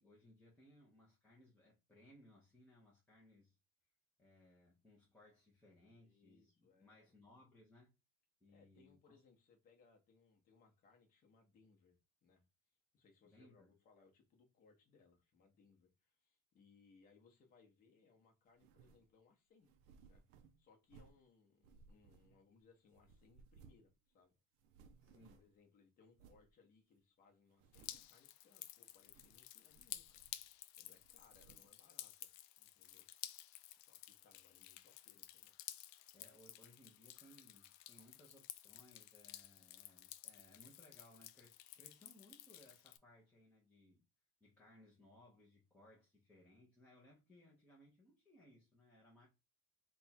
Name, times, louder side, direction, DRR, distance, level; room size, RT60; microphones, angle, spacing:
voice 1, 0.0-3.6 4.2-7.9 8.4-9.2 13.2-13.7 25.0-25.4 36.1-44.0 44.4-49.3, left 1 dB, 5° left, 0.7 m, -65 dB
voice 2, 5.9-7.1 8.5-12.4 12.9-19.7 20.0-20.2 20.6-24.3 25.1-30.2 30.8-32.3 32.6-33.1 33.8-35.5, left 4 dB, 30° left, 0.9 m, -70 dB
sound 1, 18.5-19.1 19.6-21.3 21.6-22.6 22.9-23.9 24.2-24.3 24.6-25.6 26.1-26.5 27.0-27.1 27.5-28.2 28.9-29.4 29.7-30.6 30.9-31.8, right 5 dB, 50° right, 0.5 m, -65 dB
Drip, 27.7-43.0, left 14 dB, 85° left, 0.5 m, -54 dB
3.4 x 2.3 x 4.2 m
cardioid pair, 165°, 29 cm